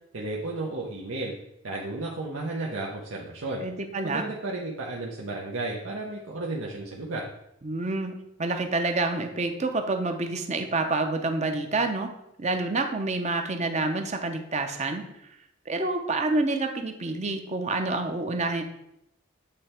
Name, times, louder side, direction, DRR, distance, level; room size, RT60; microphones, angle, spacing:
voice 1, 0.1-1.3 1.6-3.6 4.0-7.3, right 2 dB, 80° right, -3 dB, 0.9 m, -33 dB
voice 2, 3.6-4.3 7.6-12.1 12.4-15.0 15.7-18.6, right 2 dB, 35° right, 5 dB, 0.7 m, -28 dB
8.6 x 3.3 x 4.3 m, 0.82 s
head